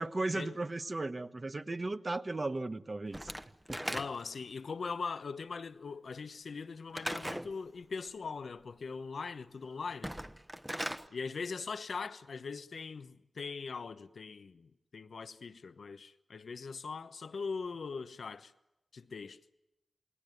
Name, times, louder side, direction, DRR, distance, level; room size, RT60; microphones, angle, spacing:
voice 1, 0.0-3.3 3.7-4.0, right 2 dB, 35° right, 1.1 m, -36 dB
Slam / Wood, 3.1-4.4 6.9-7.5 9.9-11.1, equal, 5° right, 1.1 m, -38 dB
voice 2, 3.9-10.1 11.1-18.5 18.9-19.4, left 5 dB, 85° left, 1.0 m, -41 dB
28.5 x 21.0 x 9.4 m
wide cardioid pair, 95°, 0 cm